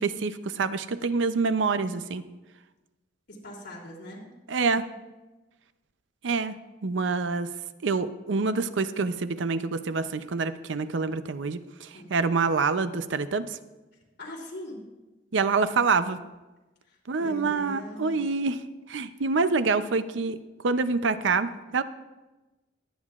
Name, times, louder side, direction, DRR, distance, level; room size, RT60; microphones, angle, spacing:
voice 1, 0.0-2.2 4.5-4.9 6.2-6.6 6.8-7.5 7.8-13.6 15.3-16.2 17.1-18.6 18.9-20.4 20.6-21.8, right 4 dB, 75° right, 12 dB, 0.6 m, -26 dB
voice 2, 3.3-4.2 11.9-12.1 14.2-14.8 16.9-18.2, left 1 dB, 60° left, -2 dB, 3.1 m, -41 dB
22.5 x 9.3 x 2.4 m, 1.1 s
head